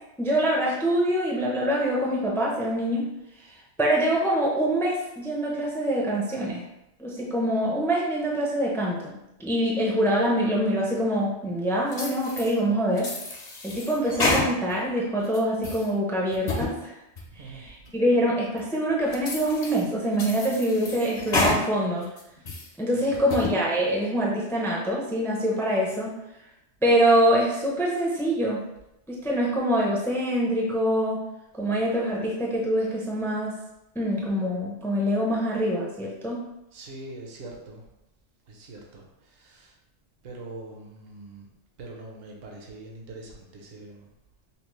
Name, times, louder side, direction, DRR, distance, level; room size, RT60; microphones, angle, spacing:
voice 1, 0.2-3.1 3.8-6.6 7.0-13.1 13.6-16.9 17.5-22.1 22.8-26.1 26.8-28.6 29.1-31.2 31.5-33.5 33.9-36.4, right 1 dB, 5° left, -3 dB, 0.4 m, -25 dB
sound 1, 11.9-12.5 13.0-14.9 15.2-15.9 16.3-16.7 17.2-17.3 17.9-18.0 18.6-18.7 19.1-19.8 20.2-21.6 22.0-22.7 23.1-23.5, left 2 dB, 45° left, 0.7 m, -29 dB
voice 2, 17.2-17.9 22.9-23.3 36.7-37.8 38.5-39.8 40.2-41.5 41.8-44.1, right 2 dB, 60° right, 0 dB, 0.9 m, -43 dB
5.6 x 2.0 x 3.1 m, 0.89 s
omnidirectional pair, 1.2 m